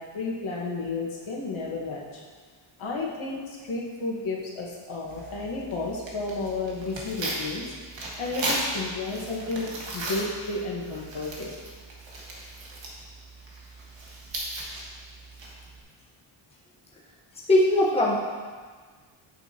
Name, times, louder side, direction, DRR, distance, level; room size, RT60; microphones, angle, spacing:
voice 1, 0.0-2.2 2.8-7.6 8.2-11.5, left 3 dB, 70° left, -3 dB, 1.6 m, -32 dB
Tearing, 5.1-15.8, right 2 dB, 65° right, 1.7 m, -36 dB
voice 2, 17.5-18.2, left 1 dB, 10° left, -5 dB, 1.1 m, -20 dB
9.2 x 7.9 x 2.9 m, 1.5 s
wide cardioid pair, 170°, 49 cm